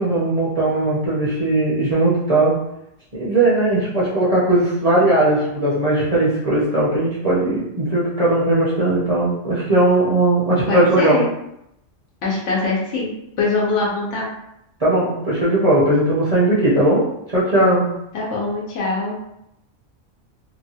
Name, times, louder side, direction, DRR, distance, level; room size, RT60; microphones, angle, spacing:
voice 1, 0.0-2.6 3.1-11.2 14.8-17.0 17.3-17.9, right 2 dB, 35° right, -8 dB, 0.7 m, -18 dB
voice 2, 10.7-11.3 12.2-13.1 13.4-14.3 18.1-19.2, left 3 dB, 80° left, -4 dB, 1.0 m, -22 dB
3.0 x 2.2 x 2.7 m, 0.82 s
omnidirectional pair, 1.2 m